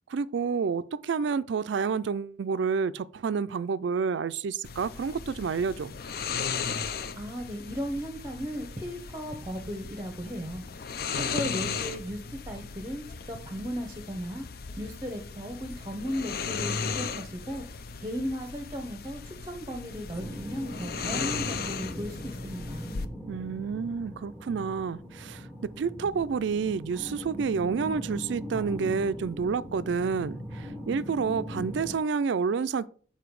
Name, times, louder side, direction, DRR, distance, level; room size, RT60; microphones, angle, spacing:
voice 1, 0.1-5.9 23.3-32.9, right 5 dB, 75° right, 0.4 m, -29 dB
sound 1, 4.6-23.1, left 6 dB, 50° left, 0.5 m, -36 dB
voice 2, 7.2-10.6 11.1-12.2 12.5-14.5 14.8-17.6 18.0-22.9, equal, 15° right, 0.8 m, -36 dB
sound 2, 20.1-32.0, equal, 10° left, 1.3 m, -40 dB
6.9 x 4.4 x 4.7 m
head